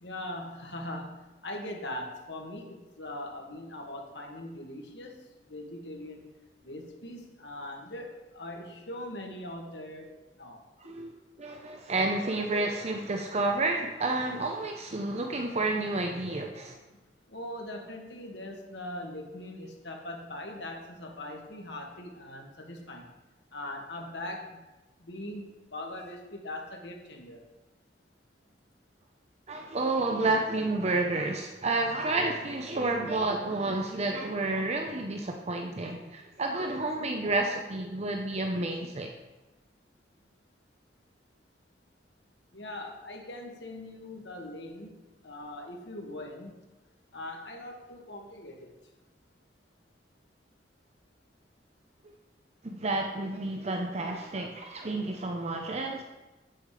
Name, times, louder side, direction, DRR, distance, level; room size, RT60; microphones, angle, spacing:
voice 1, 0.0-5.2 5.5-6.2 6.6-10.1 10.4-10.6 10.8-11.0 17.3-23.1 23.5-24.4 25.0-27.4 42.5-45.0 45.2-46.5 47.1-48.7, left 1 dB, 80° left, 1 dB, 1.9 m, -41 dB
voice 2, 10.8-11.1 11.4-16.8 29.5-39.1 52.0-52.1 52.6-56.0, right 2 dB, 40° right, 3 dB, 0.8 m, -30 dB
8.6 x 8.5 x 4.9 m, 1.1 s
head